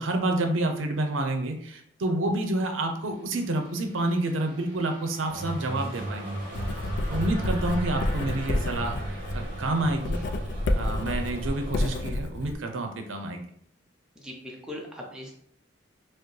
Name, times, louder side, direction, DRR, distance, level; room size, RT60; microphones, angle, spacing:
voice 1, 0.0-6.3 7.1-10.2 10.7-13.5, right 2 dB, 85° right, 5 dB, 0.6 m, -29 dB
sound 1, 2.1-9.8, equal, 35° left, 1.1 m, -47 dB
sound 2, 5.3-12.0, right 1 dB, 45° right, 0.9 m, -36 dB
Writing, 6.5-12.5, left 1 dB, 55° left, 0.3 m, -30 dB
voice 2, 14.2-15.4, left 1 dB, 5° right, -2 dB, 0.6 m, -40 dB
4.6 x 2.0 x 3.1 m, 0.69 s
head